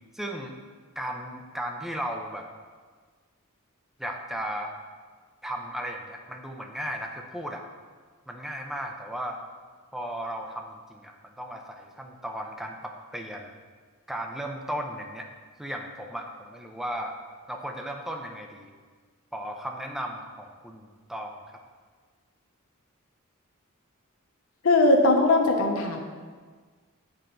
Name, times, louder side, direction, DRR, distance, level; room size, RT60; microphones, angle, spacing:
voice 1, 0.1-0.5 1.0-2.5 4.0-4.7 5.4-7.6 8.3-9.4 9.9-13.5 14.1-15.3 15.6-17.1 17.5-18.7 19.3-21.6, equal, ahead, 2 dB, 0.4 m, -35 dB
voice 2, 24.6-26.0, left 2 dB, 65° left, 3 dB, 0.7 m, -20 dB
8.5 x 4.4 x 2.6 m, 1.5 s
head